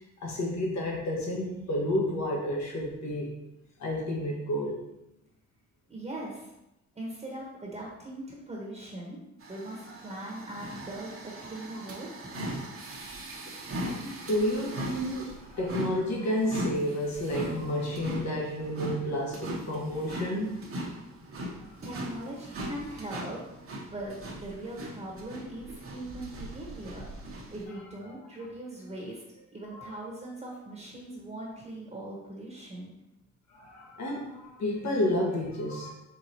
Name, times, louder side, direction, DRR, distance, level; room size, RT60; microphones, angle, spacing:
voice 1, 0.2-3.3 3.8-4.8 13.8-20.5 21.6-21.7 29.7-29.9 33.5-35.9, left 1 dB, 65° left, -1 dB, 1.3 m, -31 dB
voice 2, 5.9-6.5 7.0-9.2 9.5-12.3 21.8-23.4 23.9-29.2 29.5-32.9, right 1 dB, 20° right, -3 dB, 1.0 m, -40 dB
sound 1, 9.4-27.6, right 1 dB, 45° right, 0.9 m, -39 dB
4.5 x 3.7 x 2.8 m, 0.89 s
cardioid pair, 90°, 30 cm